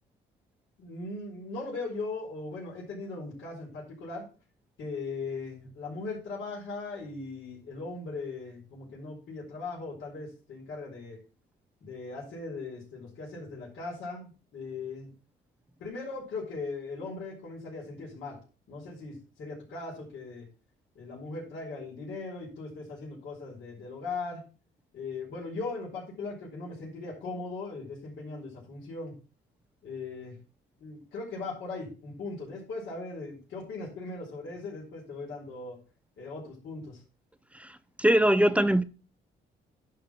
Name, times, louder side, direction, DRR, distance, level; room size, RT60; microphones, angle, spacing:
voice 1, 0.8-4.3 4.8-11.2 11.8-15.1 15.8-18.4 18.7-20.5 20.9-24.4 24.9-29.1 29.8-30.4 30.8-35.8 36.2-37.0, left 3 dB, 75° left, 4.3 m, -39 dB
voice 2, 37.5-38.8, right 1 dB, 5° right, 0.6 m, -23 dB
11.0 x 3.9 x 5.8 m
cardioid pair, 90°, 20 cm